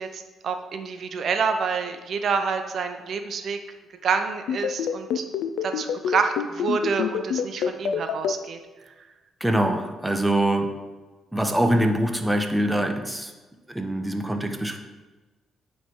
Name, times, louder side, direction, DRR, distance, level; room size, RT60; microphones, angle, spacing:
voice 1, 0.0-3.6 4.0-5.2 5.6-8.6 8.9-9.0, right 5 dB, 60° right, 7 dB, 0.5 m, -27 dB
sound 1, 4.5-8.3, left 8 dB, 80° left, 0.4 m, -26 dB
voice 2, 9.4-10.8 11.3-13.3 13.7-14.8, right 1 dB, 5° right, 5 dB, 0.7 m, -24 dB
8.8 x 3.2 x 4.5 m, 1.2 s
cardioid pair, 90°, 0 cm